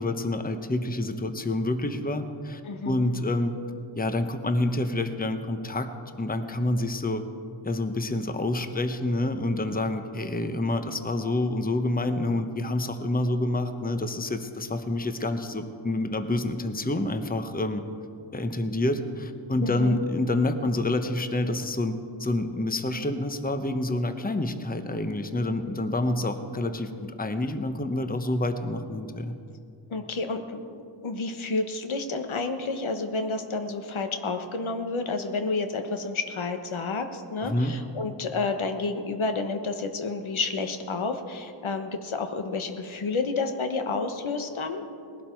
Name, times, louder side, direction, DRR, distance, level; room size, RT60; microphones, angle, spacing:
voice 1, 0.0-3.5 3.9-5.9 6.2-7.2 7.6-17.8 18.3-21.9 22.2-29.4 37.4-37.7, left 2 dB, 20° left, 8 dB, 0.9 m, -28 dB
voice 2, 2.6-3.1 19.6-20.0 29.9-44.8, left 3 dB, 75° left, 6 dB, 1.2 m, -30 dB
19.5 x 11.5 x 4.5 m, 2.4 s
wide cardioid pair, 60°, 49 cm